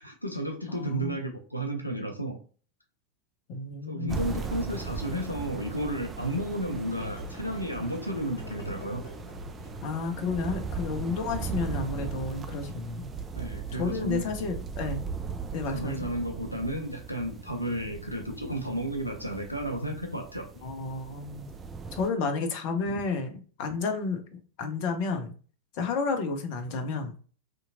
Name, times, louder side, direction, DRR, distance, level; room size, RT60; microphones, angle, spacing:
voice 1, 0.0-2.4 3.9-9.0 13.3-14.2 15.7-20.5 22.8-23.0, equal, 90° left, 4 dB, 0.5 m, -33 dB
voice 2, 0.7-1.2 3.5-4.2 9.8-13.1 13.8-15.0 15.5-16.1 20.6-21.5 21.9-23.3 23.6-25.3 25.7-27.1, left 4 dB, 45° left, 6 dB, 0.6 m, -31 dB
sound 1, 4.1-22.1, right 5 dB, 20° right, 0.4 m, -38 dB
sound 2, 6.7-12.6, left 1 dB, 65° left, 0.9 m, -45 dB
3.6 x 2.8 x 2.5 m, 0.40 s
figure-of-eight pair, 90°, 0 cm